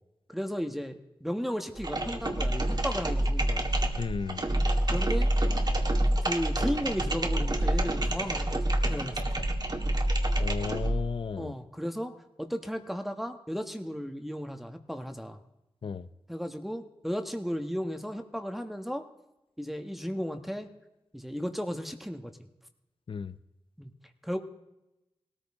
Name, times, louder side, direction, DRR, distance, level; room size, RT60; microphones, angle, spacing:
voice 1, 0.3-3.7 4.9-5.3 6.2-9.2 9.5-9.6 11.3-15.4 16.3-19.1 19.6-20.7 21.1-22.3 23.8-23.9 24.2-24.4, equal, ahead, 1.4 m, -35 dB
sound 1, 1.8-11.1, right 1 dB, 45° right, 1.9 m, -27 dB
voice 2, 4.0-4.4 10.4-11.5 15.8-16.1 23.1-23.3, left 6 dB, 60° left, 0.7 m, -34 dB
19.0 x 14.0 x 3.7 m
cardioid pair, 40°, 10 cm